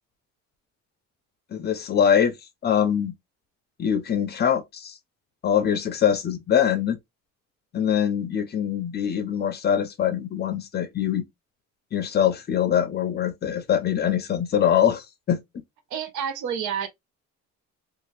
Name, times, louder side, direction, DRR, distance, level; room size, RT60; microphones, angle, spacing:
voice 1, 1.5-2.3 2.6-3.1 3.8-4.9 5.4-7.0 7.7-11.2 11.9-15.4, left 9 dB, 35° left, 0.5 m, -23 dB
voice 2, 15.9-16.9, right 8 dB, 80° right, 0.9 m, -29 dB
2.8 x 2.3 x 3.1 m
cardioid pair, 160°, 30 cm